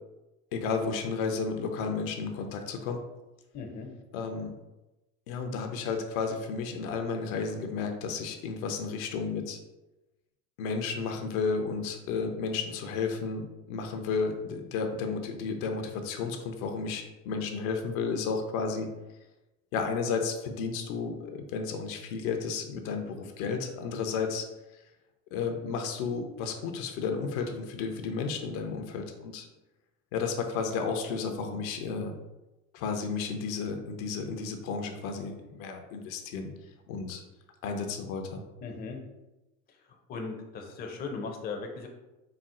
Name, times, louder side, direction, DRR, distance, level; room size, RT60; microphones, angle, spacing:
voice 1, 0.5-3.0 4.1-4.5 5.3-9.6 10.6-18.9 19.7-24.5 24.7-24.8 25.3-29.5 30.1-32.1 32.7-36.5 36.9-37.2 37.6-38.4, left 5 dB, 70° left, 5 dB, 0.7 m, -32 dB
voice 2, 3.5-3.9 38.6-39.0 40.1-41.9, left 4 dB, 25° left, 2 dB, 0.5 m, -37 dB
4.4 x 2.0 x 3.7 m, 1.0 s
hypercardioid pair, 100°, 42 cm